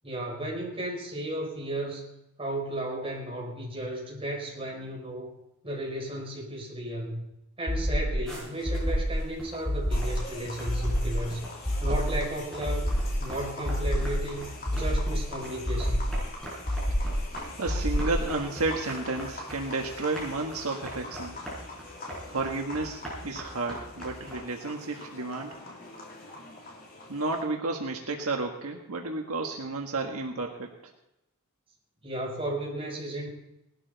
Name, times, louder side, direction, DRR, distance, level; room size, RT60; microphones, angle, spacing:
voice 1, 0.0-2.1 2.4-5.3 5.6-7.2 7.6-11.5 11.8-12.9 13.2-16.0 32.0-33.3, right 1 dB, 25° right, -1 dB, 4.8 m, -34 dB
sound 1, 7.7-8.3 8.6-9.3 9.6-10.3 10.7-11.3 11.6-12.3 12.6-13.3 13.6-14.3 14.7-15.3 15.7-16.3 16.7-17.3 17.7-18.3, equal, 20° left, 2.3 m, -28 dB
sound 2, 8.3-12.3 12.5-24.3, right 1 dB, 5° left, 7.3 m, -42 dB
sound 3, 9.9-27.4, left 2 dB, 40° left, 3.1 m, -44 dB
voice 2, 17.6-21.4 22.3-25.6 27.1-30.7, right 3 dB, 80° right, 2 dB, 1.6 m, -32 dB
19.0 x 12.5 x 4.1 m, 0.87 s
head